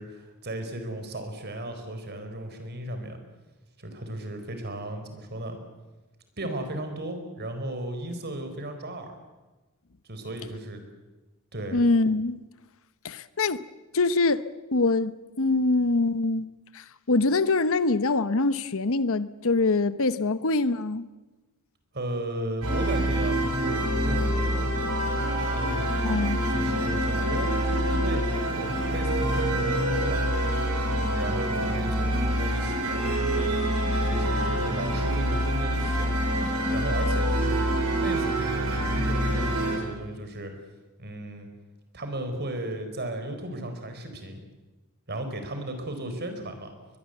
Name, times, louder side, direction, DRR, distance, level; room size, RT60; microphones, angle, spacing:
voice 1, 0.0-3.2 3.8-5.6 6.4-9.2 10.0-10.8 11.5-11.9 21.9-24.7 25.5-26.1 26.5-30.2 30.9-33.6 34.0-36.3 36.7-37.7 38.0-40.5 41.0-41.5 41.9-44.4 45.1-46.7, right 1 dB, 50° right, 4.4 m, -35 dB
voice 2, 11.7-12.4 13.0-13.6 13.9-14.4 14.7-16.5 16.7-21.1 26.0-26.4, left 3 dB, 65° left, 1.0 m, -24 dB
sound 1, 22.6-39.8, equal, 90° right, 6.3 m, -26 dB
22.0 x 22.0 x 8.0 m
head